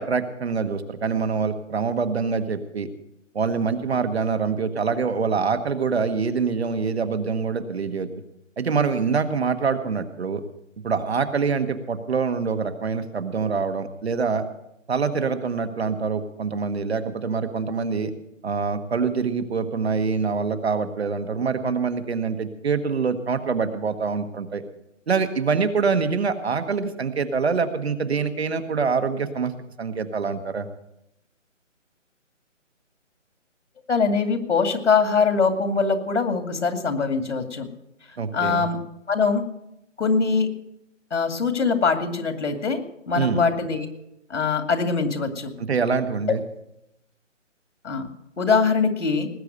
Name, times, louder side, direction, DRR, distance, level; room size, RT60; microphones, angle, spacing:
voice 1, 0.0-2.9 3.3-8.1 8.6-10.4 10.8-14.4 14.9-18.1 18.4-24.6 25.1-29.5 29.8-30.7 38.2-38.7 43.2-43.5 45.7-46.4, right 5 dB, 55° right, 9 dB, 1.4 m, -25 dB
voice 2, 33.9-37.7 38.3-38.8 39.1-39.4 40.0-40.5 41.1-42.8 43.1-43.9 44.3-45.5 47.8-48.1 48.4-49.3, left 5 dB, 65° left, 7 dB, 2.4 m, -22 dB
19.0 x 8.4 x 6.6 m, 0.82 s
figure-of-eight pair, 160°, 38 cm